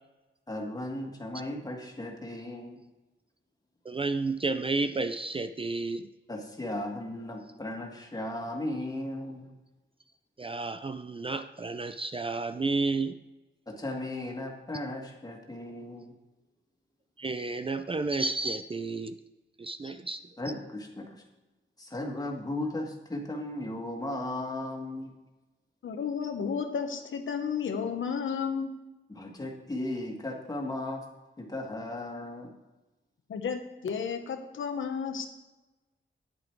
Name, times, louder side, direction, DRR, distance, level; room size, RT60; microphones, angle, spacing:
voice 1, 0.5-2.8 6.3-9.5 13.7-16.1 20.4-21.2 21.8-25.1 29.1-31.0 31.4-32.5, left 1 dB, 20° left, 1 dB, 1.8 m, -36 dB
voice 2, 3.9-6.1 10.4-13.2 17.2-19.1 19.6-20.2, right 3 dB, 30° right, 10 dB, 0.4 m, -31 dB
voice 3, 25.8-28.7 33.3-35.3, left 6 dB, 85° left, 6 dB, 1.1 m, -32 dB
10.0 x 8.0 x 4.6 m, 1.1 s
wide cardioid pair, 105°, 20 cm